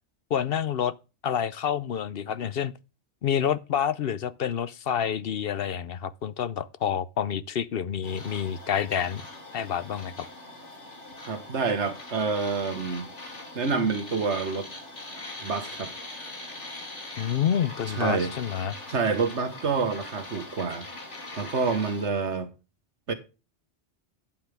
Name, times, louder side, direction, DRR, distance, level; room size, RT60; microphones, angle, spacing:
voice 1, 0.3-0.9 1.2-2.7 3.2-9.2 9.5-10.3 17.2-18.7, left 8 dB, 60° left, 0.8 m, -28 dB
sound 1, 8.0-22.1, left 2 dB, 90° left, 3.4 m, -42 dB
voice 2, 11.2-13.1 13.5-14.7 15.4-15.9 17.9-18.3 18.9-20.9 21.4-22.5 23.1-23.2, right 5 dB, 80° right, 1.7 m, -27 dB
11.5 x 8.9 x 3.4 m
omnidirectional pair, 1.2 m